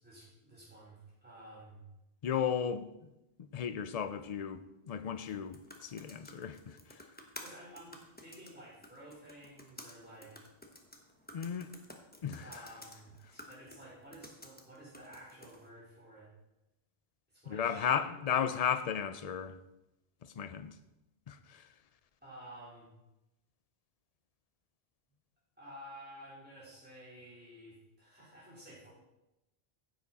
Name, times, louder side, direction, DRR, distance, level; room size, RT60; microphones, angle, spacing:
voice 1, 0.0-1.9 7.4-10.5 12.4-16.3 17.3-18.5 22.2-22.9 25.6-28.9, right 1 dB, 10° right, 3.8 m, -52 dB
voice 2, 2.2-2.9 3.5-6.8 11.3-11.7 12.2-12.4 17.5-19.5 20.4-20.7 21.3-21.6, left 8 dB, 45° left, 0.5 m, -34 dB
sound 1, 5.1-15.7, left 1 dB, 10° left, 0.9 m, -54 dB
10.0 x 7.7 x 4.1 m
omnidirectional pair, 1.1 m